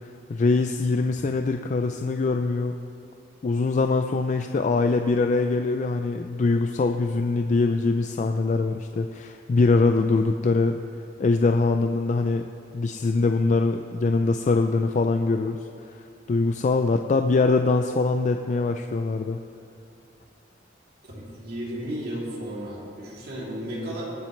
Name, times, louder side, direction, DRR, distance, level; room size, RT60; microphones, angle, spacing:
voice 1, 0.3-2.8 3.4-10.8 11.2-12.4 12.7-15.6 16.3-19.4, left 3 dB, 40° left, 6 dB, 0.3 m, -23 dB
voice 2, 21.0-24.1, equal, 55° right, -5 dB, 2.8 m, -34 dB
21.0 x 7.3 x 3.2 m, 2.6 s
head